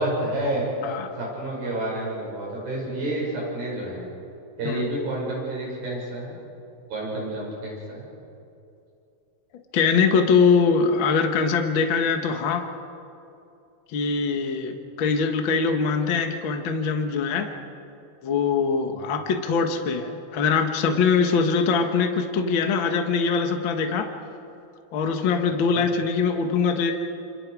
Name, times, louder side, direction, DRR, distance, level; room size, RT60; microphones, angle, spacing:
voice 1, 0.0-4.1 4.6-6.4 6.9-8.1 18.9-19.0 25.7-25.9, right 1 dB, 70° right, -4 dB, 7.8 m, -29 dB
voice 2, 9.7-12.7 13.9-17.5 18.2-24.1 24.9-26.9, left 5 dB, 55° left, 5 dB, 1.4 m, -22 dB
28.0 x 27.0 x 4.8 m, 2.7 s
omnidirectional pair, 4.4 m